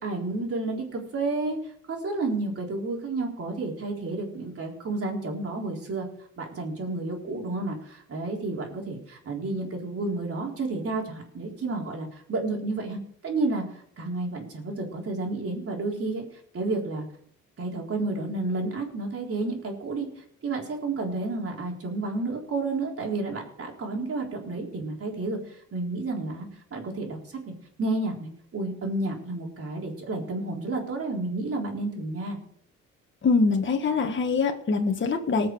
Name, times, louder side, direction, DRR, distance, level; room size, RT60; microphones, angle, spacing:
voice 1, 0.0-6.1 6.4-16.2 16.5-17.1 17.6-27.2 27.8-32.4, right 2 dB, 50° right, 0 dB, 4.0 m, -31 dB
voice 2, 33.2-35.5, left 4 dB, 40° left, 3 dB, 1.6 m, -24 dB
19.5 x 6.7 x 4.8 m, 0.64 s
cardioid pair, 90°, 30 cm